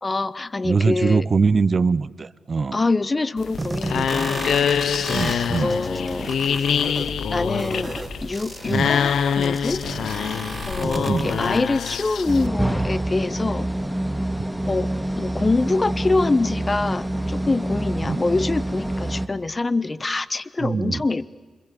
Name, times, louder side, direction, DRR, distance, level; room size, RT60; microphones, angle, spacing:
voice 1, 0.0-1.3 2.7-4.6 5.2-6.3 7.3-9.9 10.7-13.7 14.7-21.3, left 3 dB, 35° left, 17 dB, 1.0 m, -25 dB
voice 2, 0.6-2.8 5.1-5.7 8.7-8.9 11.1-11.3 18.0-18.2 20.6-21.0, right 4 dB, 55° right, 18 dB, 0.8 m, -22 dB
sound 1, 3.4-12.5, left 7 dB, 80° left, 0.8 m, -25 dB
sound 2, 3.6-11.6, right 2 dB, 30° right, 1.7 m, -33 dB
sound 3, 12.3-19.3, right 1 dB, 5° right, 2.3 m, -26 dB
27.0 x 24.5 x 8.4 m, 1.4 s
supercardioid pair, 45°, 0 cm